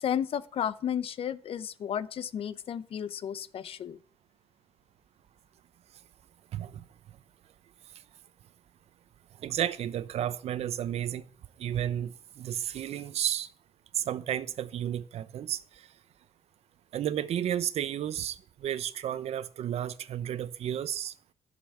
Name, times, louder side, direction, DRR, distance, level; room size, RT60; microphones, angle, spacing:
voice 1, 0.0-4.0, left 9 dB, 60° left, 0.7 m, -33 dB
voice 2, 6.5-6.9 9.4-11.2 11.6-13.5 14.0-15.9 16.9-21.1, right 10 dB, 70° right, 0.8 m, -32 dB
11.5 x 6.8 x 7.0 m
cardioid pair, 120°, 11 cm